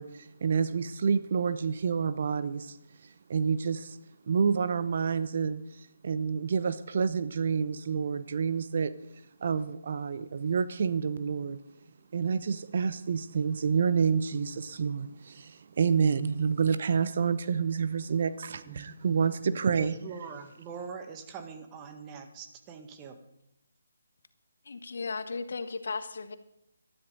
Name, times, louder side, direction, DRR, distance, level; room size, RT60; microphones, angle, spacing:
voice 1, 0.0-2.8 3.0-4.0 4.3-8.9 9.4-11.6 12.1-20.0, right 6 dB, 45° right, 13 dB, 0.8 m, -28 dB
voice 2, 18.6-19.2 19.8-23.2, right 5 dB, 20° right, 6 dB, 1.7 m, -43 dB
voice 3, 24.6-26.4, left 4 dB, 55° left, 10 dB, 1.4 m, -35 dB
19.5 x 13.0 x 4.0 m, 0.82 s
figure-of-eight pair, 145°, 0 cm